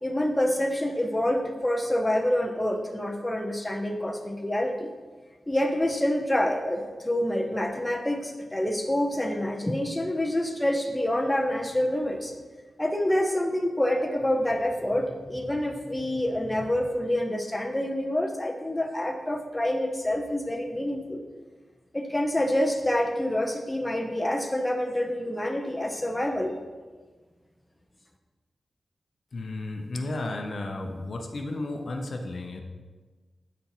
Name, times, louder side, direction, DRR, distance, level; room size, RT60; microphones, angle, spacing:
voice 1, 0.0-4.9 5.5-12.3 12.8-21.2 21.9-26.5, left 1 dB, 10° left, 2 dB, 0.6 m, -27 dB
voice 2, 29.3-32.6, left 2 dB, 55° left, 3 dB, 0.6 m, -33 dB
8.2 x 4.4 x 3.9 m, 1.3 s
wide cardioid pair, 135°, 0 cm